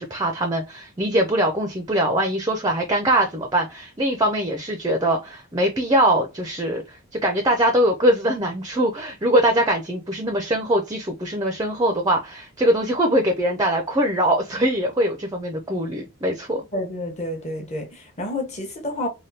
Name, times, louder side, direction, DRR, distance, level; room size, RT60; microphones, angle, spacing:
voice 1, 0.0-16.6, right 1 dB, 15° right, 0.4 m, -22 dB
voice 2, 16.7-19.1, left 1 dB, 30° left, 0.8 m, -29 dB
3.4 x 2.2 x 2.7 m
head